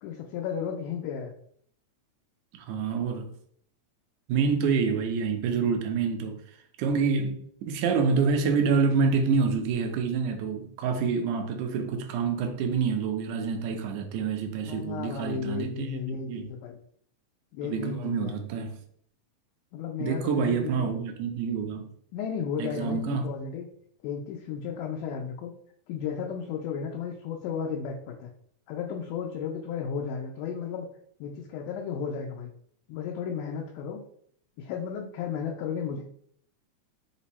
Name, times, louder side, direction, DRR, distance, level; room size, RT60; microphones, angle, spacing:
voice 1, 0.0-1.3 14.7-16.8 17.5-18.3 19.7-20.9 22.1-23.7 24.0-25.5 25.9-28.3 28.7-30.9 31.2-32.5 32.9-34.0 34.6-36.0, left 7 dB, 90° left, 2.1 m, -34 dB
voice 2, 2.5-3.3 4.3-6.4 6.8-16.5 17.6-18.8 20.0-21.9 22.6-23.3, right 5 dB, 85° right, 2.0 m, -27 dB
5.2 x 2.0 x 4.1 m
omnidirectional pair, 3.5 m